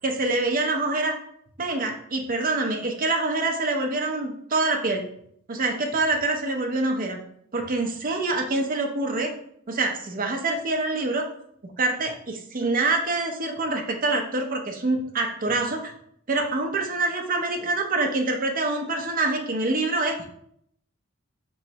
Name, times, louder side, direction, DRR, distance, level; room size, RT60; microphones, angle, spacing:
voice 1, 0.0-1.2 1.6-5.0 5.5-7.2 7.5-9.3 9.7-11.3 11.6-15.9 16.3-20.2, right 2 dB, 40° right, 3 dB, 0.6 m, -25 dB
4.3 x 3.1 x 2.8 m, 0.68 s
head